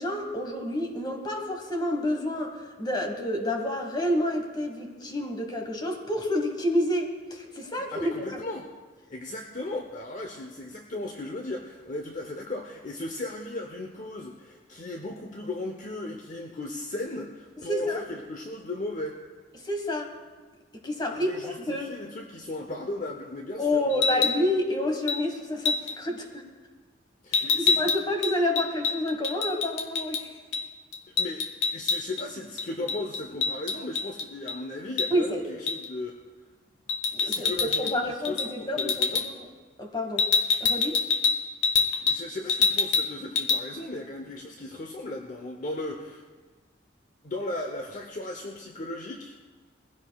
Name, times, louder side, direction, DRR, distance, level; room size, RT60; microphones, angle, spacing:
voice 1, 0.0-8.4 17.7-18.0 19.6-20.1 20.8-21.9 23.6-26.5 27.3-30.3 35.1-35.5 37.1-39.3 39.8-40.3 40.6-41.0, left 1 dB, 20° left, 3 dB, 1.4 m, -29 dB
voice 2, 7.9-8.7 9.1-19.2 21.1-24.3 27.2-27.8 31.2-36.2 37.2-39.3 42.0-46.2 47.2-49.4, left 2 dB, 40° left, 2 dB, 0.8 m, -36 dB
sound 1, 23.9-24.4 25.1-25.2 25.6-25.9 27.3-30.2 30.5-30.6 30.9-32.2 32.6-34.6 35.0-35.1 35.7-35.9 36.9-38.0 38.2-38.5 38.8-39.3 40.2-42.2 42.5-43.1 43.4-43.6, left 5 dB, 80° left, 1.0 m, -26 dB
20.5 x 16.0 x 2.3 m, 1.4 s
head